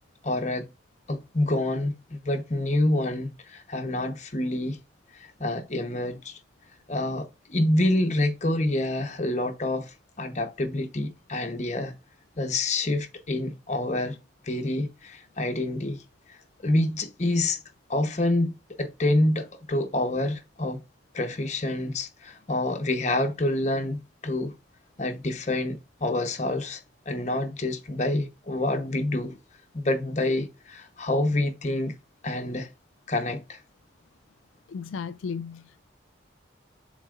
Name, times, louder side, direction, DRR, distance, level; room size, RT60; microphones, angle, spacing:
voice 1, 0.2-0.7 1.1-4.8 5.1-6.4 6.9-11.9 12.4-14.2 14.4-16.0 16.3-17.6 17.9-20.8 21.1-24.5 25.0-26.8 27.1-29.4 29.7-31.9 32.2-32.7 33.1-33.6, left 1 dB, 35° left, 1.0 m, -27 dB
voice 2, 34.7-35.8, left 6 dB, 90° left, 0.3 m, -35 dB
11.0 x 4.0 x 2.5 m
head